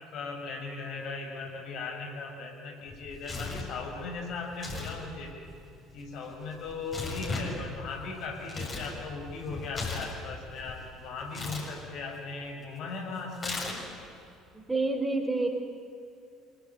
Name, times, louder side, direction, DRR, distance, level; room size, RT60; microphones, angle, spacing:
voice 1, 0.0-5.3 5.9-13.9, left 4 dB, 55° left, 1 dB, 6.0 m, -38 dB
Tearing, 2.9-3.7 4.5-5.0 5.2-8.9 9.3-10.8 11.3-11.7 13.3-14.0, left 3 dB, 30° left, 7.4 m, -37 dB
voice 2, 14.5-15.5, right 2 dB, 15° right, 5 dB, 4.2 m, -28 dB
26.5 x 24.0 x 9.2 m, 2.7 s
figure-of-eight pair, 55°, 0 cm